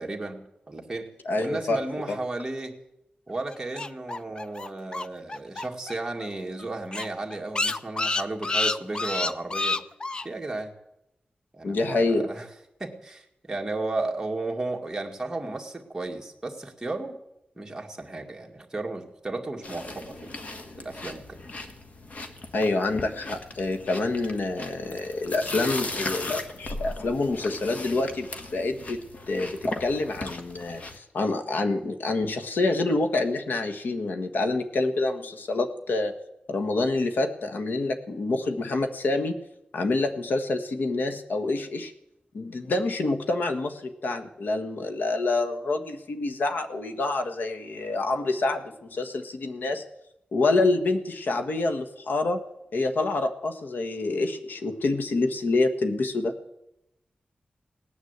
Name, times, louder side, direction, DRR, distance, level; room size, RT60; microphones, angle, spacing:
voice 1, 0.0-1.1 1.4-2.8 3.3-9.8 10.2-10.7 11.5-12.5 12.8-17.2 17.6-20.3 20.8-21.4, right 2 dB, 15° right, 1 dB, 2.0 m, -34 dB
voice 2, 1.2-1.8 2.1-2.2 11.6-12.3 22.5-36.1 36.5-39.4 39.7-41.9 42.3-48.6 48.9-49.8 50.3-52.4 52.7-56.3, left 2 dB, 75° left, 6 dB, 1.5 m, -27 dB
sound 1, 3.5-5.9 6.2-6.3 6.6-6.7 6.9-10.2, left 3 dB, 30° left, 0.5 m, -28 dB
sound 2, 19.6-31.0, left 2 dB, 50° left, 1.4 m, -37 dB
18.0 x 9.9 x 8.1 m, 0.86 s
wide cardioid pair, 155°, 3 cm